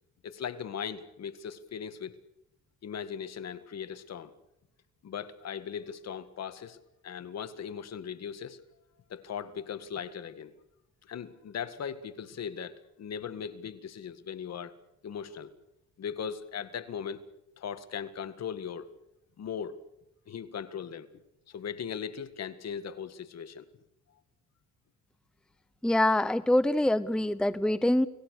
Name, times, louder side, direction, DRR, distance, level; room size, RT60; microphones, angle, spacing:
voice 1, 0.2-2.1 2.8-4.3 5.0-8.6 9.1-10.6 11.0-14.7 15.0-15.5 16.0-17.2 17.6-19.0 19.4-19.8 20.3-21.1 21.5-23.7, left 7 dB, 60° left, 11 dB, 1.9 m, -38 dB
voice 2, 25.8-28.1, left 1 dB, 5° left, 15 dB, 0.8 m, -25 dB
30.0 x 19.0 x 6.6 m, 0.82 s
cardioid pair, 90°, 30 cm